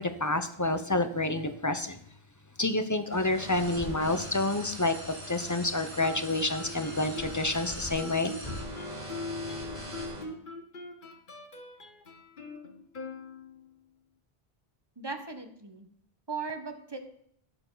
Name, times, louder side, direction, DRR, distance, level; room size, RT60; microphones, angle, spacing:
voice 1, 0.0-2.0 2.6-5.0 5.3-8.3, left 2 dB, 20° left, 9 dB, 0.7 m, -28 dB
sound 1, 3.1-10.2, equal, 40° right, 3.8 m, -41 dB
Guitar, 6.0-13.7, left 2 dB, 55° left, 1.3 m, -42 dB
voice 2, 15.0-15.9 16.3-17.0, right 4 dB, 25° right, 6 dB, 1.2 m, -38 dB
16.0 x 7.0 x 4.0 m, 0.67 s
omnidirectional pair, 1.0 m